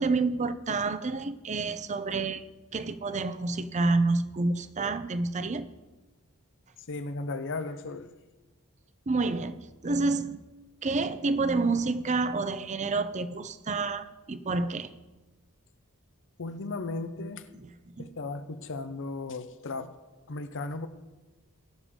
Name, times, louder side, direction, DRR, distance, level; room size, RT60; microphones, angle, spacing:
voice 1, 0.0-2.4 2.7-5.7 9.1-10.4 10.8-14.9 17.6-17.7 17.9-18.1, right 3 dB, 35° right, 0.6 m, -28 dB
voice 2, 6.9-8.2 16.4-17.5 18.0-20.0 20.3-20.9, left 3 dB, 60° left, 0.8 m, -36 dB
20.5 x 6.9 x 3.7 m
head